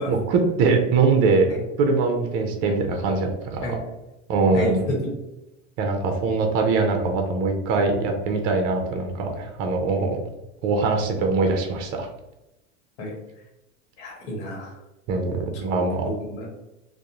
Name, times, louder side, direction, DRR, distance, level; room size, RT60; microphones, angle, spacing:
voice 1, 0.1-1.5 1.8-3.8 4.3-4.8 5.8-10.2 10.6-12.1 15.1-16.1, right 4 dB, 45° right, 3 dB, 0.5 m, -22 dB
voice 2, 4.5-5.1 13.0-13.2 14.0-14.8 16.0-16.5, left 1 dB, 65° left, -1 dB, 1.0 m, -30 dB
2.4 x 2.0 x 2.8 m, 0.94 s
supercardioid pair, 125°, 36 cm